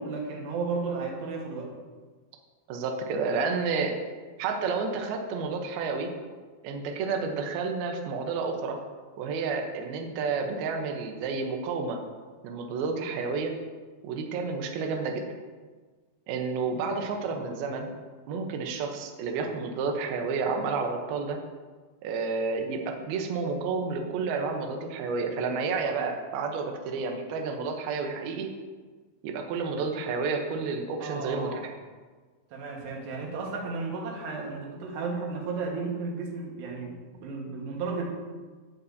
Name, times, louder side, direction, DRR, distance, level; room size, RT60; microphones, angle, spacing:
voice 1, 0.0-1.7 31.0-31.6 32.5-38.1, right 4 dB, 65° right, -1 dB, 3.2 m, -33 dB
voice 2, 2.7-4.0 4.4-6.1 6.6-8.8 9.2-12.0 12.4-13.5 14.0-15.2 16.3-17.9 18.3-21.4 22.0-28.5 29.2-31.7, right 4 dB, 90° right, 3 dB, 2.1 m, -30 dB
17.0 x 7.0 x 2.7 m, 1.4 s
omnidirectional pair, 5.7 m